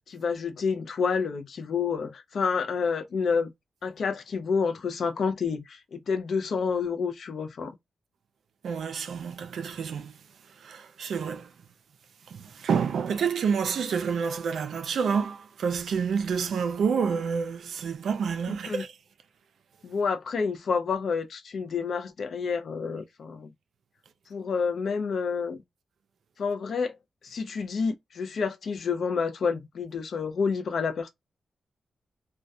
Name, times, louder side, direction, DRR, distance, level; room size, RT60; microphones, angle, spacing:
voice 1, 0.0-3.5 3.8-7.7 18.7-18.8 19.8-23.5 24.3-25.6 26.4-26.9 27.2-31.1, left 5 dB, 65° left, 0.4 m, -29 dB
voice 2, 8.6-11.5 12.3-19.0, right 6 dB, 75° right, 0.4 m, -29 dB
2.2 x 2.2 x 2.5 m
cardioid pair, 105°, 0 cm